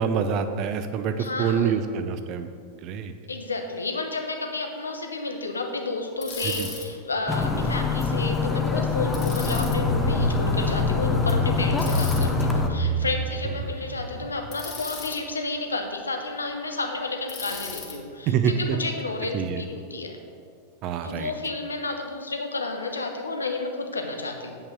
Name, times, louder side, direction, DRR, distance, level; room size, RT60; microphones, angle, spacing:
voice 1, 0.0-2.5 2.8-3.1 6.4-6.7 7.4-7.7 13.6-13.7 18.3-18.8 19.3-19.6 20.8-21.3, right 7 dB, 40° right, 9 dB, 0.6 m, -26 dB
voice 2, 1.2-1.7 3.3-20.2 21.0-24.6, left 3 dB, 75° left, 4 dB, 0.9 m, -31 dB
Bicycle, 6.2-6.9 9.1-9.8 11.8-12.3 14.5-15.2 17.3-18.0, left 5 dB, 30° left, 2.1 m, -37 dB
sound 1, 7.3-12.7, left 4 dB, 10° left, 0.7 m, -25 dB
sound 2, 9.6-14.7, equal, 80° right, 1.1 m, -27 dB
8.4 x 5.6 x 6.1 m, 2.3 s
figure-of-eight pair, 90°, 0 cm